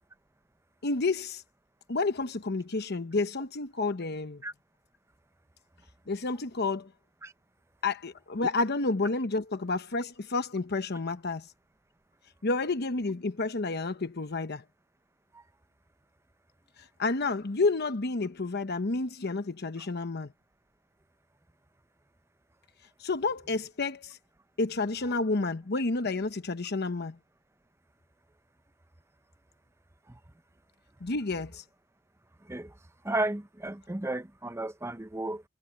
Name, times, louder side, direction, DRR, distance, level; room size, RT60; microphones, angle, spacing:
voice 1, 0.8-1.4 1.9-4.4 6.1-6.9 7.8-11.5 12.4-14.6 17.0-20.3 23.0-24.2 24.6-27.2 31.0-31.6, left 3 dB, 55° left, 0.9 m, -30 dB
voice 2, 33.0-35.4, right 2 dB, 15° right, 0.7 m, -33 dB
head